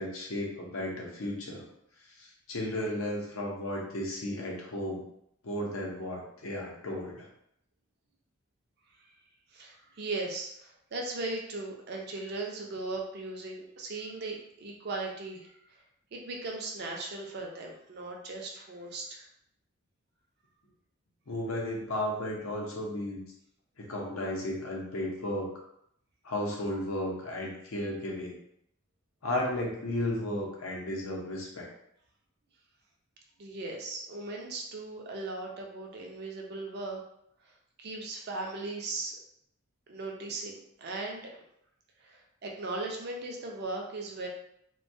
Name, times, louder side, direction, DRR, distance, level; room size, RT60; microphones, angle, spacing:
voice 1, 0.0-1.6 2.2-5.0 5.4-7.3 21.3-23.3 23.8-25.5 26.2-28.3 29.2-31.7, left 1 dB, 75° left, -2 dB, 0.6 m, -34 dB
voice 2, 9.5-15.5 16.1-19.2 33.4-37.0 37.4-37.5 37.8-39.2 39.9-41.4 42.0-44.3, right 2 dB, 50° right, 0 dB, 0.4 m, -38 dB
2.2 x 2.2 x 2.6 m, 0.73 s
head